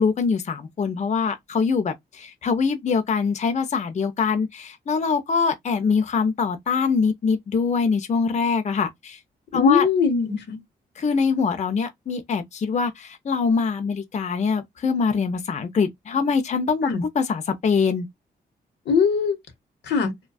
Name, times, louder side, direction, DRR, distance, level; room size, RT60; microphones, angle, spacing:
voice 1, 0.0-9.2 9.5-9.9 11.0-18.1, left 5 dB, 40° left, 0.5 m, -23 dB
voice 2, 9.5-10.6 16.8-17.0 18.9-19.4 19.8-20.1, left 5 dB, 85° left, 0.9 m, -21 dB
2.5 x 2.2 x 2.3 m
cardioid pair, 70°, 18 cm